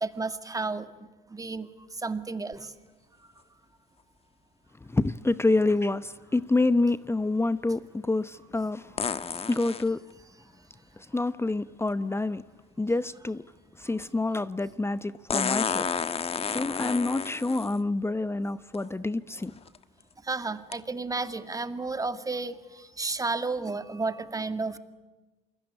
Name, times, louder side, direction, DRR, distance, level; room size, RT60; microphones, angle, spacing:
voice 1, 0.0-0.9 1.3-1.7 2.0-2.7 20.3-22.6 23.0-24.8, right 3 dB, 15° right, 2.1 m, -31 dB
sound 1, 2.5-2.6 9.0-9.9 11.9-12.0 15.3-17.8 18.7-18.8 19.5-19.8 20.7-20.8, left 6 dB, 30° left, 1.3 m, -31 dB
voice 2, 4.8-9.0 9.5-10.0 11.0-12.4 12.8-13.4 13.8-15.9 16.5-19.5, left 2 dB, 10° left, 0.9 m, -27 dB
28.0 x 21.5 x 9.8 m
hypercardioid pair, 75°, 20 cm